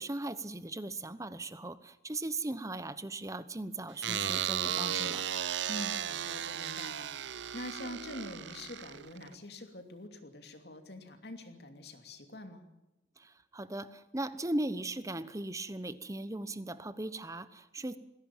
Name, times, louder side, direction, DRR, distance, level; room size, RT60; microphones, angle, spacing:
voice 1, 0.0-5.2 13.2-18.0, right 2 dB, 15° right, 14 dB, 0.9 m, -38 dB
sound 1, 4.0-9.3, right 9 dB, 75° right, 0.7 m, -35 dB
voice 2, 5.6-12.6, left 1 dB, 60° left, 6 dB, 2.8 m, -45 dB
20.5 x 16.5 x 8.9 m, 0.93 s
head